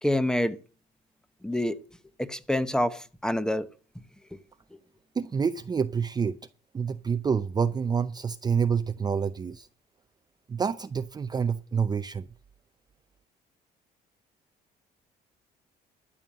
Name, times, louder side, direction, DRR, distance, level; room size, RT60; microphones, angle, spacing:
voice 1, 0.0-0.6 1.4-1.8 2.2-3.7, left 1 dB, 5° left, 0.9 m, -26 dB
voice 2, 5.1-6.4 6.7-9.7 10.5-12.3, right 6 dB, 25° right, 0.5 m, -27 dB
12.5 x 7.1 x 7.5 m
cardioid pair, 110°, 17 cm